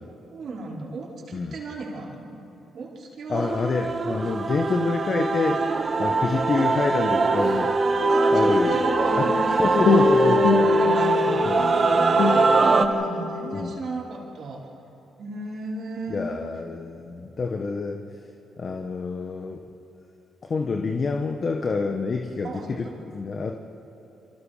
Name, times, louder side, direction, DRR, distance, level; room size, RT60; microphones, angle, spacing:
voice 1, 0.3-2.4 2.7-3.5 6.6-6.7 8.1-10.2 10.5-11.5 11.8-11.9 12.2-14.6 15.2-16.3 22.4-22.9, right 3 dB, 65° right, -3 dB, 4.9 m, -35 dB
voice 2, 3.3-5.6 6.0-7.7 8.3-8.8 9.2-9.3 9.5-10.6 11.4-11.7 13.5-13.8 16.1-18.0 18.6-19.6 20.4-22.9 23.1-23.6, left 4 dB, 50° left, 3 dB, 1.5 m, -27 dB
Male singing / Female singing / Musical instrument, 3.4-12.9, right 3 dB, 45° right, 1.6 m, -22 dB
sound 1, 8.0-13.7, left 4 dB, 70° left, 2.4 m, -24 dB
29.5 x 23.5 x 5.2 m, 3.0 s
supercardioid pair, 65°, 0 cm